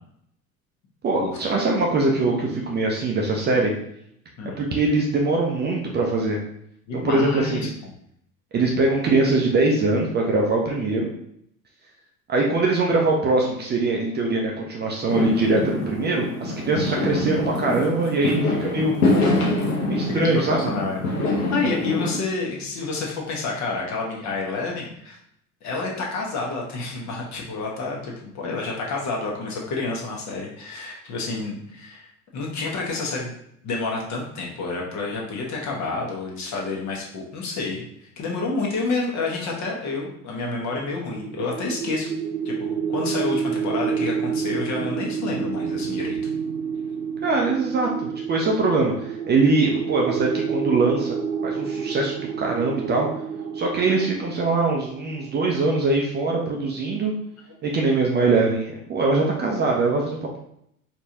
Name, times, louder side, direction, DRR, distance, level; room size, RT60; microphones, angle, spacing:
voice 1, 1.0-3.7 4.6-6.4 6.9-7.7 8.5-11.1 12.3-19.0 19.9-20.7 47.2-51.2 51.4-53.1 53.5-57.1 57.6-60.4, right 3 dB, 25° right, -1 dB, 0.6 m, -22 dB
voice 2, 6.9-7.9 20.1-25.2 25.6-32.1 32.3-33.3 33.6-42.1 42.4-46.2, left 3 dB, 40° left, -2 dB, 1.2 m, -29 dB
Fireworks, 15.1-22.2, left 2 dB, 75° left, 0.9 m, -25 dB
sound 1, 40.7-55.7, right 6 dB, 75° right, 0.6 m, -29 dB
4.5 x 3.0 x 2.8 m, 0.72 s
figure-of-eight pair, 70°, 45 cm